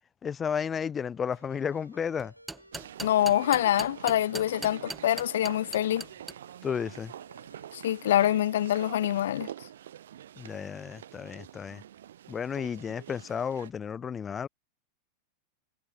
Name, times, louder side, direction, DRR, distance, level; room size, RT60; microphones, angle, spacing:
voice 1, 0.2-2.3 6.6-7.1 10.4-11.8 12.3-14.5, left 7 dB, 20° left, 2.2 m, -33 dB
Ringtone, 1.3-8.2, equal, 90° right, 6.0 m, -57 dB
sound 1, 2.2-6.3, right 3 dB, 10° right, 4.5 m, -39 dB
sound 2, 2.7-13.7, right 11 dB, 60° right, 1.6 m, -46 dB
voice 2, 3.0-6.0 7.7-9.5, left 12 dB, 60° left, 0.6 m, -25 dB
figure-of-eight pair, 90°, 0 cm